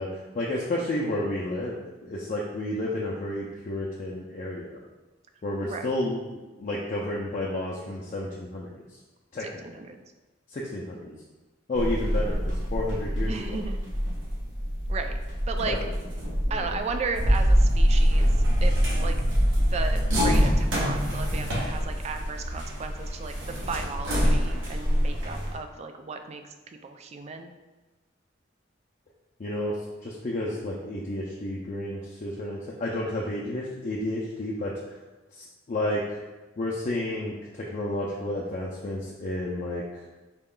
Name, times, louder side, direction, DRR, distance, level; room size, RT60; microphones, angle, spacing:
voice 1, 0.0-4.8 5.4-8.7 9.3-9.8 10.5-11.2 11.7-13.6 15.7-15.9 16.5-16.8 29.4-34.8 35.3-36.2 36.6-39.8, left 1 dB, 40° left, -4 dB, 0.4 m, -31 dB
voice 2, 9.4-10.0 13.2-13.8 14.9-15.2 15.5-15.8 16.5-18.3 18.6-19.2 19.7-26.4 26.8-27.5, right 4 dB, 35° right, 6 dB, 0.3 m, -35 dB
sound 1, 11.7-25.5, equal, 90° right, 1.0 m, -25 dB
4.1 x 2.3 x 3.7 m, 1.2 s
head